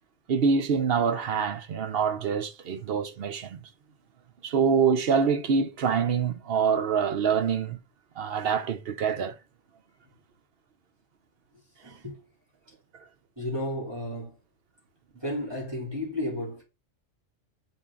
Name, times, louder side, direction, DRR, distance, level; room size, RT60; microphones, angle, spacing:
voice 1, 0.3-3.7 4.4-7.8 8.2-9.4, right 6 dB, 55° right, 0.8 m, -25 dB
voice 2, 11.8-12.2 13.4-14.4 15.2-16.6, left 1 dB, 20° right, 3.1 m, -33 dB
7.5 x 4.3 x 3.7 m
omnidirectional pair, 1.3 m